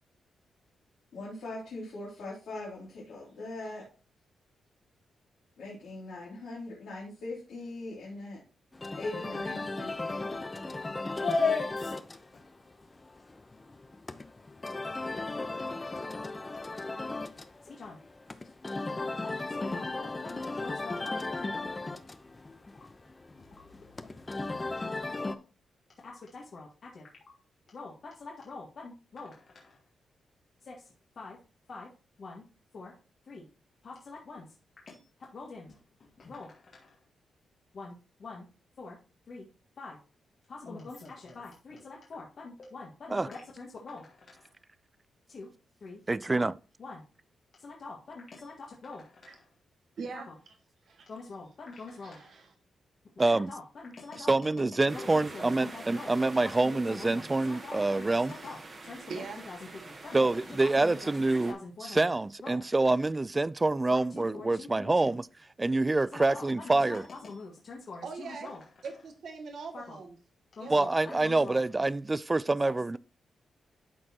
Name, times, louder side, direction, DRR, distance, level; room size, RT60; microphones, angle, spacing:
voice 1, 1.1-3.9 5.6-8.4 8.9-10.7, left 2 dB, 80° left, 2.8 m, -41 dB
sound 1, 8.7-25.4, left 2 dB, 30° left, 0.7 m, -37 dB
voice 2, 11.2-12.0 12.3-12.4 15.1-15.3 15.8-16.0 17.6-18.0 18.8-21.5 23.5-24.8 26.0-27.1 27.7-29.8 30.6-31.4 31.7-31.9 32.2-32.4 32.7-32.9 33.3-33.5 33.8-34.5 34.9-35.0 35.3-37.0 37.7-37.9 38.2-38.5 38.8-39.0 39.3-39.5 39.8-40.0 40.5-44.5 45.3-45.5 45.8-46.0 46.3-46.5 46.8-47.0 47.6-49.4 50.1-50.3 51.1-52.3 53.3-59.6 59.9-61.1 61.5-62.1 62.4-62.6 63.9-65.2 66.1-68.6 69.7-70.0 70.6-71.0 71.2-71.6 72.6-72.7, left 4 dB, 60° left, 1.7 m, -42 dB
voice 3, 46.1-46.5 53.2-53.5 54.3-58.3 60.1-61.6 61.8-65.3 65.6-67.0 70.7-73.0, right 2 dB, 25° right, 0.4 m, -26 dB
voice 4, 50.0-50.3 50.8-51.1 51.8-52.5 59.1-59.4 68.0-68.5 68.8-70.2 70.6-70.7, right 4 dB, 70° right, 1.8 m, -41 dB
sound 2, 54.9-61.5, right 3 dB, 45° right, 2.0 m, -46 dB
12.0 x 4.3 x 2.9 m
supercardioid pair, 55°, 0 cm